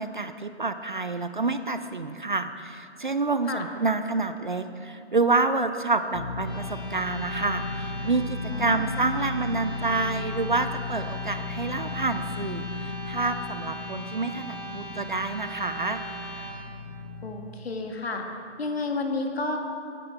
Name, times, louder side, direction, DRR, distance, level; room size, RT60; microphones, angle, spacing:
voice 1, 0.0-16.0, right 3 dB, 45° right, 10 dB, 0.4 m, -28 dB
sound 1, 6.1-17.3, left 4 dB, 80° left, 1.3 m, -36 dB
sound 2, 6.4-16.5, right 2 dB, 20° left, 1.6 m, -40 dB
voice 2, 8.5-8.9 17.2-18.2 18.6-19.6, left 3 dB, 60° left, 3 dB, 1.6 m, -31 dB
17.5 x 9.6 x 3.4 m, 2.7 s
hypercardioid pair, 170°, 35 cm